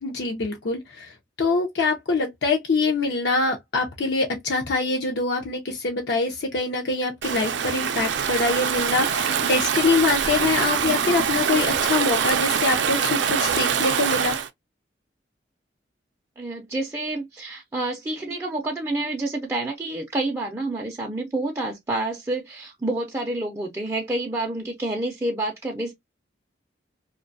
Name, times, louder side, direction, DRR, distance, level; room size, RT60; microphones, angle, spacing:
voice 1, 0.0-14.4, left 3 dB, 70° left, 0.5 m, -24 dB
Stream / Ocean, 7.2-14.5, right 7 dB, 80° right, 0.4 m, -24 dB
voice 2, 16.4-25.9, right 2 dB, 15° right, 0.4 m, -28 dB
2.6 x 2.2 x 2.5 m
head